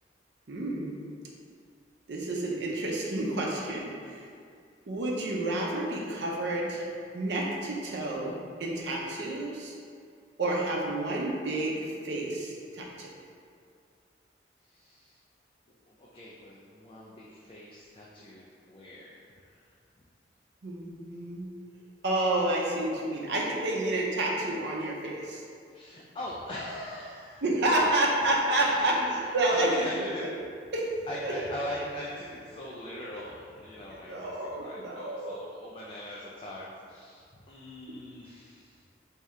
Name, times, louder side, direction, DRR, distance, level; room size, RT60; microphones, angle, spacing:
voice 1, 0.5-1.0 2.1-4.3 4.9-6.9 7.1-9.7 10.4-13.1 20.6-21.5 22.0-25.4 27.4-29.0 29.3-29.9 30.2-30.3 30.7-30.9 31.2-31.3 34.1-35.3 37.9-38.0, right 1 dB, 70° right, -3 dB, 0.6 m, -29 dB
voice 2, 14.6-15.2 15.9-19.7 25.7-27.4 27.7-27.9 28.2-30.3 31.1-38.8, equal, 30° left, -5 dB, 0.3 m, -41 dB
3.2 x 2.7 x 3.5 m, 2.3 s
head